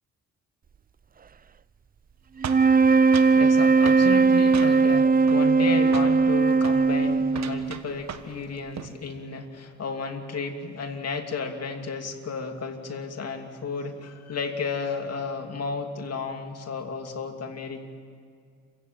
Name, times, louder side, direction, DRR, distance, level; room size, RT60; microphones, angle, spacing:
sound 1, 2.4-7.9, right 4 dB, 30° right, 0.5 m, -19 dB
sound 2, 2.4-3.4 3.9-4.1 4.5-5.0 5.3-5.7 5.9-6.2 6.6-6.8 7.3-8.4 8.6-9.0, right 8 dB, 65° right, 1.5 m, -37 dB
voice 1, 3.4-17.8, left 4 dB, 55° left, 4 dB, 2.8 m, -33 dB
28.5 x 16.0 x 9.0 m, 2.2 s
cardioid pair, 90°, 30 cm